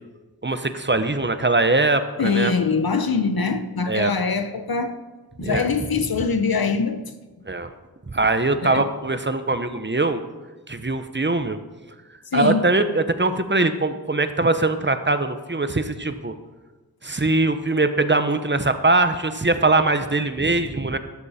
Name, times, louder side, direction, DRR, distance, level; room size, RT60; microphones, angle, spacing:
voice 1, 0.4-2.5 3.9-4.1 5.4-5.7 7.5-7.7 8.1-10.2 10.7-11.6 12.3-16.3 17.0-21.0, right 2 dB, 30° right, 9 dB, 1.0 m, -21 dB
voice 2, 2.2-4.9 5.4-7.0 7.4-7.5 8.6-8.8 12.3-12.6, left 5 dB, 70° left, 9 dB, 1.0 m, -23 dB
13.0 x 12.5 x 4.4 m, 1.2 s
wide cardioid pair, 50°, 37 cm